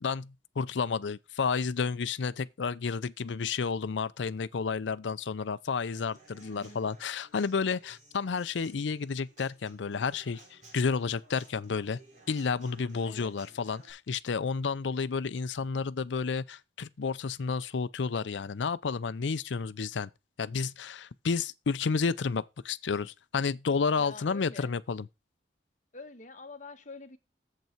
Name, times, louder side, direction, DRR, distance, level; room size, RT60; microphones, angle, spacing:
voice 1, 0.0-12.0 12.3-20.1 20.4-25.1, left 5 dB, 85° left, 0.5 m, -31 dB
Human voice / Acoustic guitar / Drum, 5.9-13.9, right 2 dB, 40° right, 3.9 m, -57 dB
voice 2, 6.4-6.9 13.0-13.3 24.0-24.7 25.9-27.2, left 3 dB, 45° left, 1.2 m, -46 dB
8.1 x 7.6 x 4.5 m
head